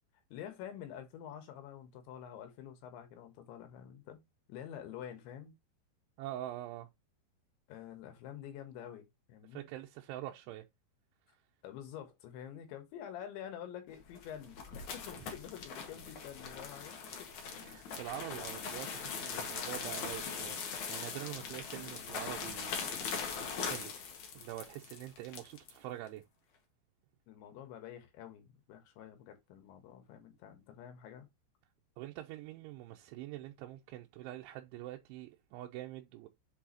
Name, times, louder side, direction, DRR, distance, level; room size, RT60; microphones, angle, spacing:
voice 1, 0.3-4.2 4.5-5.5 7.7-9.6 11.6-17.8 27.3-31.3, left 10 dB, 80° left, 3.7 m, -48 dB
voice 2, 6.2-6.9 9.5-10.7 17.6-23.4 23.7-23.9 24.3-26.2 32.0-36.3, right 14 dB, 90° right, 3.1 m, -45 dB
sound 1, 14.0-25.8, left 6 dB, 55° left, 2.3 m, -41 dB
7.6 x 4.7 x 2.9 m
omnidirectional pair, 5.3 m